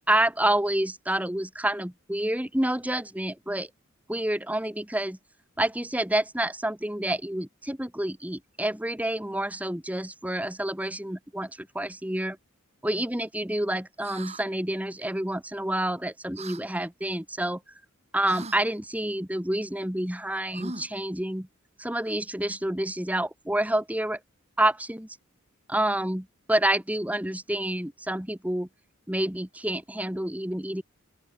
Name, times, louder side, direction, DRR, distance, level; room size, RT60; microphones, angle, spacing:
voice 1, 0.0-3.7 4.1-5.2 5.6-12.4 12.8-17.6 18.1-21.5 21.8-24.2 24.6-25.2 25.7-28.7 29.1-30.8, right 1 dB, 5° right, 1.5 m, -28 dB
sound 1, 14.0-14.4 16.4-16.6 18.3-18.6 20.5-21.0, right 3 dB, 30° right, 5.0 m, -40 dB
open air
head